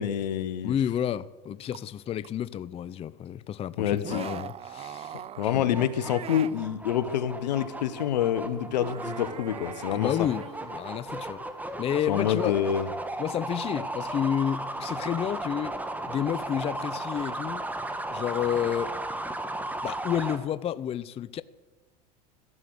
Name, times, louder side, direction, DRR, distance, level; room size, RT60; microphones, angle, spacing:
voice 1, 0.0-0.7 3.8-4.3 5.4-10.3 12.1-12.9, left 10 dB, 80° left, 1.1 m, -27 dB
voice 2, 0.6-5.8 9.9-10.5 10.7-11.4 11.8-12.6 13.2-15.7 16.1-17.7 18.1-19.0 19.8-21.4, left 9 dB, 30° left, 0.5 m, -30 dB
sound 1, 1.7-1.8 2.2-2.3 4.0-6.6 8.5-11.1, right 9 dB, 30° right, 0.6 m, -42 dB
sound 2, 5.4-20.4, right 1 dB, 5° right, 1.7 m, -36 dB
14.5 x 11.0 x 7.9 m
hypercardioid pair, 95°, 21 cm